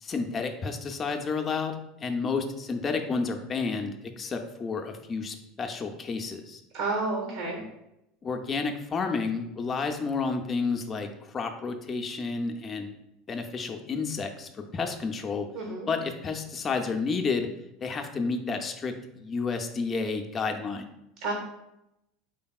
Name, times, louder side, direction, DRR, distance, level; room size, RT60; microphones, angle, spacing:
voice 1, 0.0-6.6 8.2-13.0 13.3-15.5 15.9-17.5 17.8-20.9, left 4 dB, 30° left, 4 dB, 0.4 m, -31 dB
voice 2, 6.7-7.6 15.5-15.9 21.2-21.3, right 3 dB, 75° right, 1 dB, 0.7 m, -30 dB
3.8 x 3.4 x 2.3 m, 0.86 s
hypercardioid pair, 85°, 0 cm